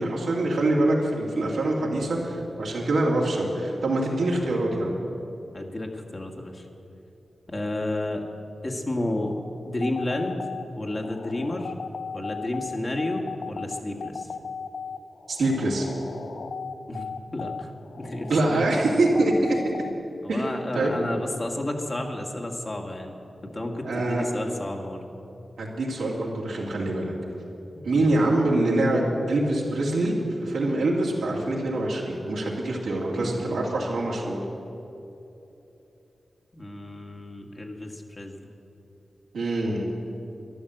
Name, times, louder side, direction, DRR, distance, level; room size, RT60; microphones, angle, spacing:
voice 1, 0.0-5.0 15.3-15.9 18.3-19.6 20.3-20.9 23.8-24.3 25.6-27.1 27.8-34.4 39.3-39.8, right 2 dB, 90° right, -3 dB, 2.5 m, -24 dB
voice 2, 5.5-6.7 7.5-8.2 8.6-10.4 10.8-11.7 12.1-14.3 16.9-18.7 19.5-19.6 20.2-25.1 27.8-28.1 33.1-33.9 36.5-38.5, left 1 dB, 40° left, 1 dB, 2.0 m, -32 dB
sound 1, 9.7-19.9, left 5 dB, 80° left, 0.5 m, -37 dB
13.0 x 11.0 x 7.9 m, 2.9 s
cardioid pair, 40°, 0 cm